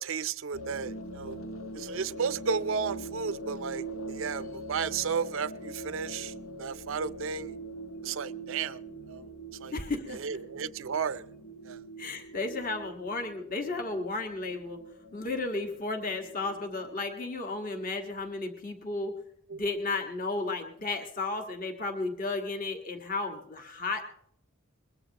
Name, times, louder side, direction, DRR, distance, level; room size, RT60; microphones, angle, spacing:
voice 1, 0.0-1.4 1.7-7.5 8.0-8.8 9.1-9.3 9.6-9.7 10.1-11.3 11.6-11.8 19.5-19.6, right 6 dB, 60° right, 15 dB, 0.5 m, -33 dB
sound 1, 0.5-16.9, right 2 dB, 75° left, 1.2 m, -43 dB
voice 2, 9.7-10.2 12.0-14.8 15.1-19.1 19.5-24.0, left 3 dB, 40° left, 4 dB, 1.6 m, -33 dB
22.0 x 20.5 x 2.9 m, 0.71 s
head